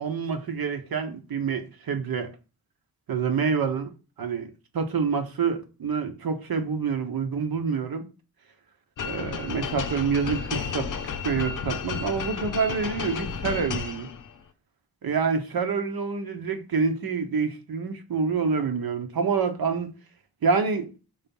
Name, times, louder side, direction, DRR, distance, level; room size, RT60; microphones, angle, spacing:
voice 1, 0.0-2.3 3.1-3.9 4.2-8.1 9.0-10.9 11.2-14.1 15.0-19.9 20.4-20.9, right 5 dB, 65° right, 1.0 m, -27 dB
sound 1, 9.0-14.4, left 6 dB, 50° left, 0.6 m, -32 dB
5.7 x 3.4 x 5.4 m
wide cardioid pair, 155°, 39 cm